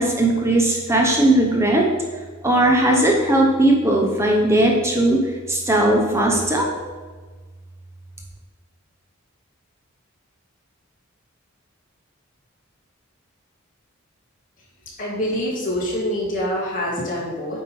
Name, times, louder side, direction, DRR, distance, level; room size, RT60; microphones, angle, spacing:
voice 1, 0.0-1.9 2.4-6.7, right 1 dB, 10° right, 0 dB, 0.8 m, -18 dB
voice 2, 15.0-17.6, equal, 40° left, -5 dB, 2.2 m, -25 dB
9.0 x 3.6 x 5.2 m, 1.4 s
head